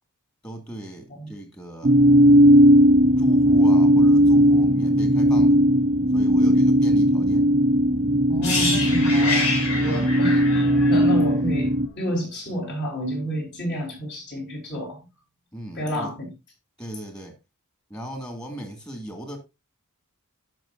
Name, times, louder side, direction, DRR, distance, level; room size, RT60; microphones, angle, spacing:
voice 1, 0.4-1.9 3.2-5.6 6.1-7.5 9.9-10.2 15.5-16.1 16.8-17.4 17.9-19.4, right 1 dB, 15° left, 2.1 m, -37 dB
sound 1, 1.8-11.9, equal, 30° right, 0.5 m, -17 dB
voice 2, 8.3-15.0 15.7-16.3, equal, 55° left, 4.5 m, -30 dB
sound 2, 8.4-12.3 12.5-12.7, left 3 dB, 75° left, 4.7 m, -28 dB
16.0 x 6.0 x 2.6 m
head